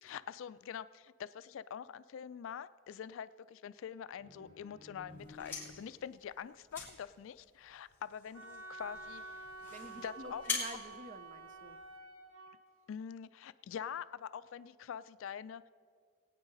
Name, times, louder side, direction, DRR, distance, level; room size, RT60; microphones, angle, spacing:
voice 1, 0.0-9.2 10.0-10.4 12.9-15.6, left 8 dB, 65° left, 15 dB, 0.3 m, -45 dB
sound 1, 4.2-6.2, left 2 dB, 30° left, 3.5 m, -55 dB
sound 2, 5.1-12.0, left 5 dB, 10° left, 2.9 m, -45 dB
Wind instrument woodwind instrument, 8.3-12.6, right 2 dB, 75° right, 1.5 m, -49 dB
voice 2, 9.7-11.8, right 1 dB, 35° right, 10 dB, 0.6 m, -50 dB
21.0 x 8.9 x 3.9 m, 2.1 s
head